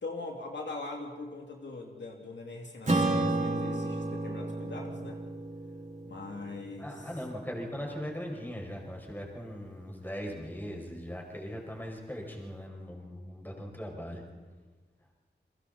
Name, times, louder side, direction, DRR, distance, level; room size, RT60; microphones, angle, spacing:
voice 1, 0.0-5.2 6.0-7.2, left 3 dB, 75° left, 1 dB, 2.6 m, -41 dB
Acoustic guitar / Strum, 2.9-7.6, right 2 dB, 40° right, 4.0 m, -32 dB
voice 2, 6.8-14.2, equal, 10° left, -1 dB, 5.4 m, -39 dB
30.0 x 23.0 x 4.2 m, 1.4 s
wide cardioid pair, 75°, 19 cm